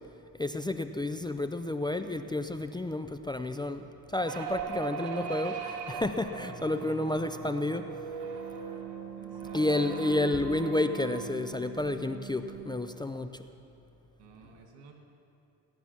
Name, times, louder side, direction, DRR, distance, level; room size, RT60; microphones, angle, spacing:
voice 1, 0.4-7.9 9.5-13.4, left 2 dB, 10° left, 8 dB, 0.5 m, -31 dB
sound 1, 4.3-13.0, right 6 dB, 65° right, 2.3 m, -39 dB
voice 2, 6.7-7.0 9.2-10.1 14.2-14.9, right 6 dB, 85° right, 2 dB, 2.5 m, -54 dB
16.5 x 11.0 x 5.9 m, 2.7 s
cardioid pair, 95°, 42 cm